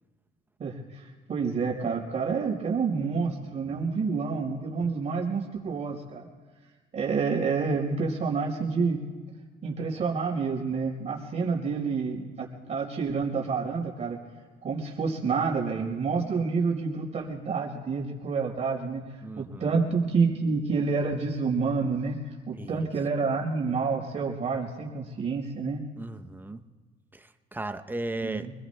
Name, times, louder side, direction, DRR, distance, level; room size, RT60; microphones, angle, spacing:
voice 1, 0.6-6.3 6.9-9.0 9.6-14.2 14.6-19.0 19.4-22.2 22.5-25.8 28.2-28.5, right 4 dB, 40° right, -2 dB, 4.3 m, -28 dB
voice 2, 19.2-19.8 22.5-22.9 26.0-26.7 27.1-28.5, right 2 dB, 10° right, 8 dB, 0.7 m, -36 dB
28.0 x 21.0 x 2.2 m, 1.4 s
cardioid pair, 110°, 17 cm